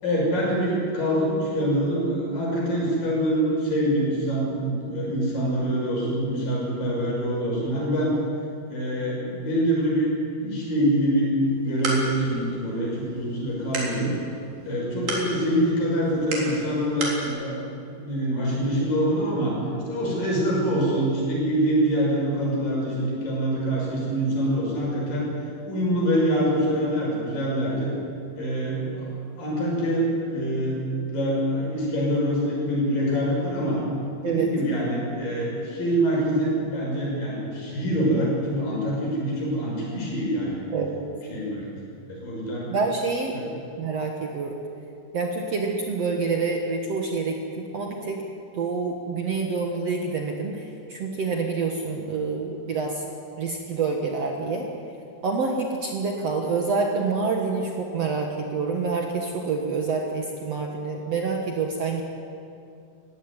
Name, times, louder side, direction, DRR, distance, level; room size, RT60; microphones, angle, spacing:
voice 1, 0.0-8.2 8.7-10.1 10.4-14.1 14.6-17.6 17.9-19.6 19.9-25.3 25.7-27.9 28.4-30.8 31.1-33.8 34.2-40.6 41.3-41.8 42.1-42.7 43.3-43.5, equal, 60° left, -3 dB, 7.8 m, -25 dB
sound 1, 11.4-17.3, right 2 dB, 75° right, 5.6 m, -34 dB
voice 2, 40.7-41.1 42.7-43.4 43.8-44.6 45.1-48.2 48.5-53.0 53.4-54.7 55.2-62.0, right 4 dB, 55° right, 2 dB, 2.1 m, -27 dB
20.0 x 16.0 x 9.8 m, 2.6 s
omnidirectional pair, 4.4 m